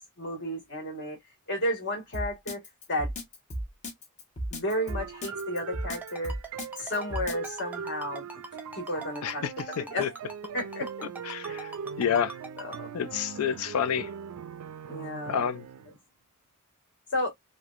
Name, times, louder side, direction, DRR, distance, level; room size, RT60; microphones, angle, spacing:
voice 1, 0.2-1.2 1.5-2.6 2.9-3.1 4.5-6.4 6.8-8.2 8.7-9.5 9.9-10.1 10.5-11.1 12.6-12.9 14.9-15.5 17.1-17.3, left 1 dB, 55° left, 1.6 m, -32 dB
Drum kit, 2.1-7.5, equal, 35° left, 0.9 m, -34 dB
sound 1, 4.7-16.0, right 7 dB, 75° right, 0.4 m, -41 dB
Ringtone, 6.0-12.8, right 2 dB, 10° right, 0.7 m, -42 dB
voice 2, 9.2-10.1 11.2-11.7 12.0-12.3 12.9-14.1 15.3-15.6, left 8 dB, 80° left, 0.4 m, -29 dB
3.4 x 2.7 x 2.4 m
head